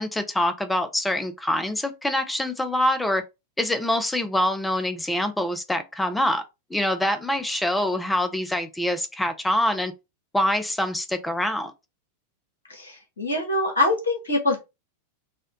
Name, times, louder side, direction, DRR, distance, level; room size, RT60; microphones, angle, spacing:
voice 1, 0.0-3.2 3.6-6.4 6.7-9.9 10.3-11.7, left 1 dB, 5° left, 0.7 m, -25 dB
voice 2, 12.7-14.6, left 2 dB, 70° left, 1.7 m, -24 dB
4.3 x 2.5 x 3.9 m
figure-of-eight pair, 90°, 0 cm